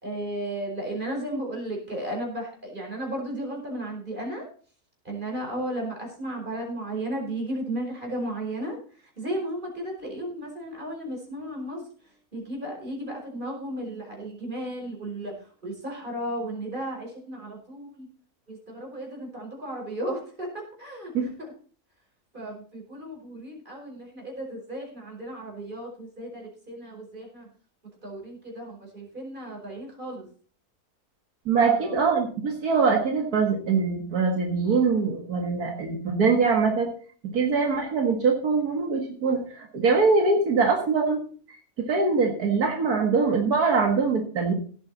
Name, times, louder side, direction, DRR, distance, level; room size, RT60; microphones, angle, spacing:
voice 1, 0.0-4.5 5.1-8.8 9.2-11.8 12.3-18.1 18.5-21.5 22.3-27.5 28.0-30.3 31.6-32.0, right 1 dB, 30° right, 0 dB, 5.1 m, -34 dB
voice 2, 31.5-36.9 37.3-41.2 41.8-44.5, right 4 dB, 80° right, 2 dB, 2.3 m, -23 dB
17.0 x 8.2 x 4.1 m, 0.43 s
omnidirectional pair, 1.6 m